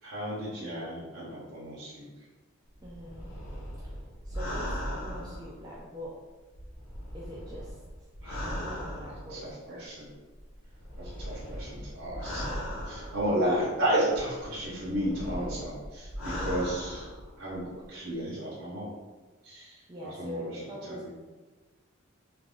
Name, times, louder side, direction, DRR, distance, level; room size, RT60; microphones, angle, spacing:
voice 1, 0.0-2.1 8.2-8.5 9.3-9.4 9.7-10.1 11.0-12.4 12.8-17.1 17.4-18.9 19.4-21.1, right 1 dB, 60° right, -7 dB, 0.8 m, -33 dB
sound 1, 2.8-6.1 6.5-9.5 10.4-13.6 14.1-17.6 17.8-17.9, equal, 70° left, 0.9 m, -38 dB
voice 2, 2.8-3.3 3.8-3.9 4.2-6.1 7.1-7.8 8.4-9.6 19.5-21.1, equal, 20° right, -5 dB, 0.4 m, -43 dB
2.9 x 2.5 x 3.6 m, 1.3 s
head